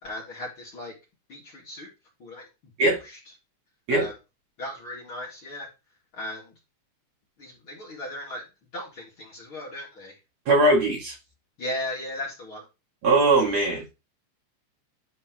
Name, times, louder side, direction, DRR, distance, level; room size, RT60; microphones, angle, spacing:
voice 1, 0.0-0.9 1.3-1.9 2.2-2.5 2.8-3.2 3.9-4.1 4.6-5.7 6.1-6.5 7.4-8.4 8.7-10.1 11.6-12.6, left 1 dB, 40° left, 2.1 m, -36 dB
voice 2, 10.5-11.1 13.0-13.8, right 2 dB, 45° right, 2.6 m, -20 dB
10.5 x 4.6 x 3.0 m
omnidirectional pair, 5.7 m